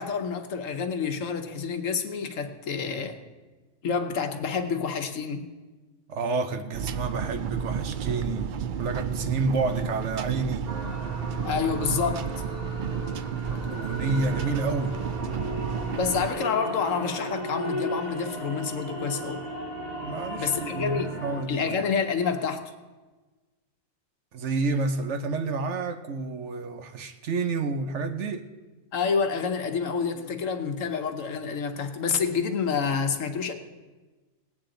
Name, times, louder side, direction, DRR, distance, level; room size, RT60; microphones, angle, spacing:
voice 1, 0.0-3.2 3.8-5.5 11.4-12.4 15.9-19.4 20.4-21.2 21.5-22.6 28.9-33.5, left 6 dB, 70° left, 1.3 m, -28 dB
voice 2, 6.1-8.5 8.8-10.7 13.5-15.0 20.0-21.8 24.3-28.5, right 3 dB, 65° right, 1.0 m, -29 dB
sound 1, 6.7-16.3, right 7 dB, 90° right, 0.4 m, -31 dB
sound 2, 10.7-21.4, equal, 45° right, 2.1 m, -36 dB
19.5 x 8.6 x 3.8 m
omnidirectional pair, 1.4 m